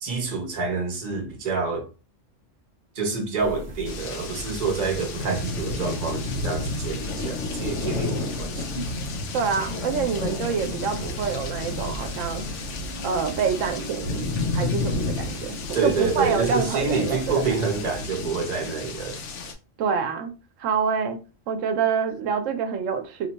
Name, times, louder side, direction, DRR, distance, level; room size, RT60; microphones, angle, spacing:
voice 1, 0.0-1.9 2.9-8.7 15.7-19.2, right 4 dB, 40° right, 0.8 m, -27 dB
sound 1, 3.4-18.0, right 2 dB, 55° right, 0.3 m, -40 dB
sound 2, 3.9-19.5, left 3 dB, 75° left, 0.9 m, -31 dB
voice 2, 9.3-12.4 13.0-17.4 19.8-20.3 20.6-21.2 21.5-23.3, right 6 dB, 90° right, 1.0 m, -26 dB
2.8 x 2.2 x 3.9 m
omnidirectional pair, 1.3 m